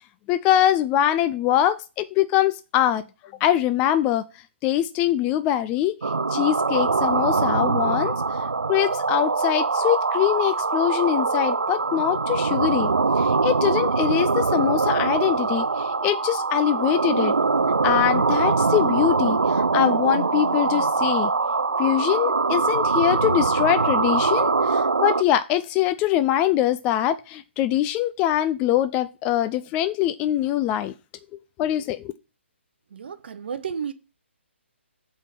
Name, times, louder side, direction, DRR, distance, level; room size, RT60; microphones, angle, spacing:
voice 1, 0.3-3.0 3.4-4.2 4.6-5.9 6.3-12.9 13.2-17.3 17.8-21.3 21.8-30.9 31.6-32.1, left 12 dB, 20° left, 0.3 m, -23 dB
sound 1, 6.0-25.2, right 4 dB, 85° right, 0.4 m, -23 dB
voice 2, 32.9-33.9, right 7 dB, 55° right, 0.8 m, -32 dB
8.1 x 3.7 x 6.0 m
figure-of-eight pair, 140°, 7 cm